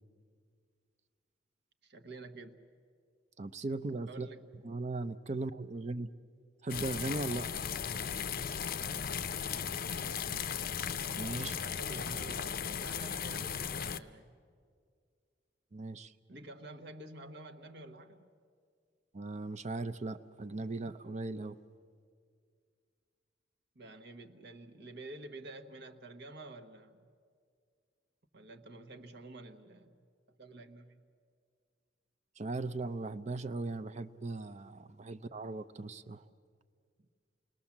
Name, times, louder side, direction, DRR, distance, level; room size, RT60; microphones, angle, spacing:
voice 1, 1.8-2.7 4.1-4.5 9.2-10.5 11.6-14.4 16.3-18.3 23.7-27.1 28.3-30.1 30.4-31.1, right 2 dB, 60° right, 6 dB, 1.2 m, -50 dB
voice 2, 3.4-4.3 4.6-6.1 6.6-7.5 11.1-11.6 15.7-16.1 19.1-21.6 32.4-36.2, right 2 dB, 40° right, 13 dB, 0.6 m, -38 dB
sound 1, 6.7-14.0, left 7 dB, 50° left, 0.6 m, -36 dB
28.5 x 20.5 x 7.2 m, 2.2 s
head